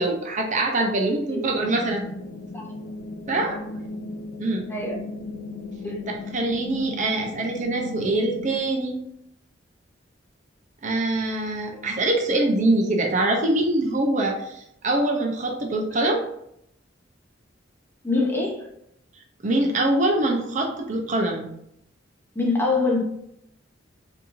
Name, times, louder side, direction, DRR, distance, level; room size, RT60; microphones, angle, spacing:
voice 1, 0.0-2.0 3.3-3.6 4.4-4.7 6.1-9.0 10.8-16.2 19.4-21.5, right 2 dB, 40° right, 2 dB, 0.5 m, -24 dB
sound 1, 1.6-8.6, left 2 dB, 85° left, 0.4 m, -36 dB
voice 2, 18.0-18.6 22.4-23.0, left 3 dB, 10° left, -1 dB, 0.6 m, -24 dB
4.2 x 2.7 x 2.5 m, 0.75 s
head